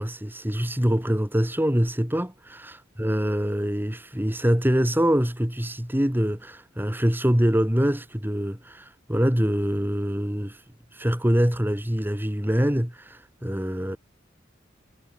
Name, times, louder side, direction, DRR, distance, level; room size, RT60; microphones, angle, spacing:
voice 1, 0.0-10.6 11.0-14.0, equal, 10° right, 2.0 m, -24 dB
head